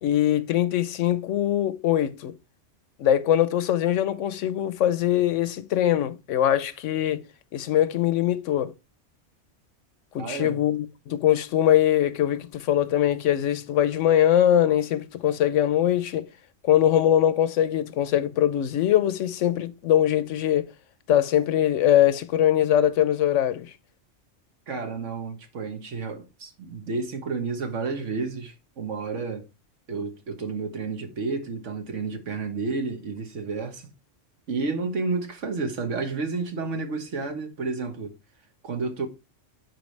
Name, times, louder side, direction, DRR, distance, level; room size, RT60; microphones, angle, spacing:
voice 1, 0.0-2.3 3.0-7.3 7.5-8.7 10.1-16.3 16.6-20.7 21.1-23.7, left 11 dB, 75° left, 1.0 m, -22 dB
voice 2, 10.2-10.6 24.7-29.4 29.9-33.9 34.5-38.2 38.6-39.1, right 4 dB, 70° right, 1.6 m, -31 dB
9.4 x 4.8 x 3.2 m
omnidirectional pair, 1.3 m